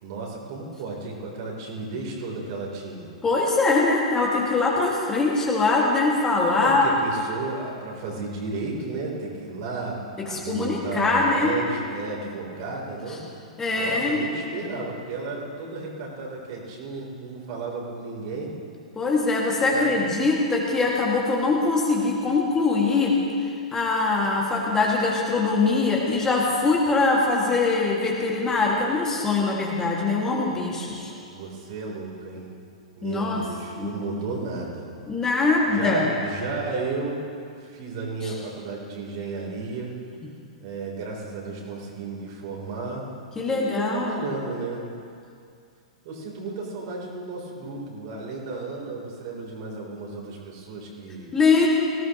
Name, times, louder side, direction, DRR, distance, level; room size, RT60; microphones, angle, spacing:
voice 1, 0.0-3.1 6.5-13.2 13.7-18.6 19.7-20.0 31.1-32.5 33.0-34.9 35.7-37.2 37.6-39.9 40.6-43.1 43.5-44.8 46.0-51.3, right 3 dB, 45° right, -2 dB, 3.5 m, -33 dB
voice 2, 3.2-6.9 10.2-11.6 13.6-14.2 19.0-23.2 23.7-31.1 33.0-33.4 33.8-34.0 35.1-36.1 38.2-38.3 43.4-44.2 51.3-51.7, left 3 dB, 15° left, -3 dB, 2.0 m, -22 dB
18.5 x 16.0 x 3.0 m, 2.4 s
figure-of-eight pair, 100°, 3 cm